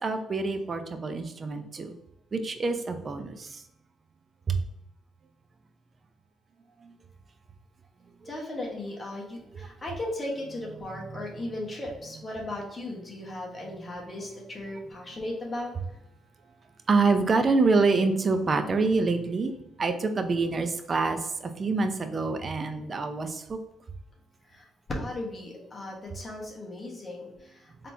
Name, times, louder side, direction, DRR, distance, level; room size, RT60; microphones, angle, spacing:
voice 1, 0.0-1.9 2.3-3.5 4.5-4.6 6.8-6.9 9.5-9.7 10.9-11.2 11.4-11.5 16.9-19.5 19.8-21.2 21.6-23.6, right 3 dB, 40° right, 8 dB, 0.5 m, -26 dB
voice 2, 8.2-15.7 24.5-27.9, left 1 dB, 30° left, -1 dB, 1.2 m, -36 dB
4.1 x 3.3 x 2.8 m, 0.83 s
cardioid pair, 90°, 0 cm